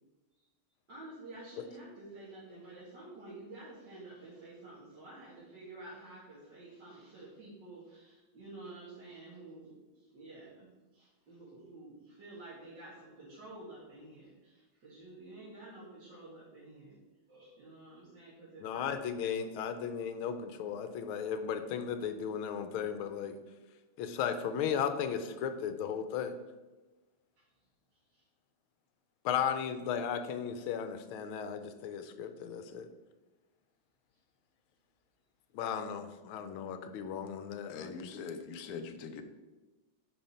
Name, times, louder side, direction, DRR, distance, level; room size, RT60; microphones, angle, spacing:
voice 1, 0.9-9.7 10.1-17.0 17.3-19.0 28.1-28.2, right 2 dB, 55° right, -9 dB, 2.5 m, -50 dB
voice 2, 18.6-23.3 24.0-26.3 29.2-32.9 35.5-38.2, left 7 dB, 80° left, 9 dB, 1.5 m, -35 dB
voice 3, 37.7-39.2, left 5 dB, 65° left, 7 dB, 0.9 m, -42 dB
8.9 x 5.3 x 4.3 m, 1.2 s
omnidirectional pair, 2.3 m